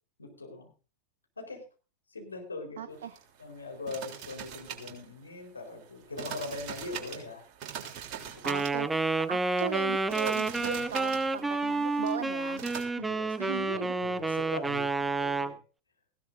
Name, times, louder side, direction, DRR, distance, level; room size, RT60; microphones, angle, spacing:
voice 1, 0.2-0.7 1.4-1.6 2.1-3.0 3.4-7.4 8.1-8.5 13.0-15.6, left 3 dB, 80° left, 2 dB, 4.3 m, -41 dB
voice 2, 2.8-3.2 8.4-12.6 13.0-13.1 13.4-14.0, right 8 dB, 60° right, 11 dB, 0.9 m, -37 dB
slide mounting machine, 2.9-12.8, right 9 dB, 40° right, 3.4 m, -44 dB
Wind instrument woodwind instrument, 8.4-15.6, right 3 dB, 10° right, 0.7 m, -30 dB
19.5 x 16.0 x 2.7 m, 0.35 s
figure-of-eight pair, 90°, 0 cm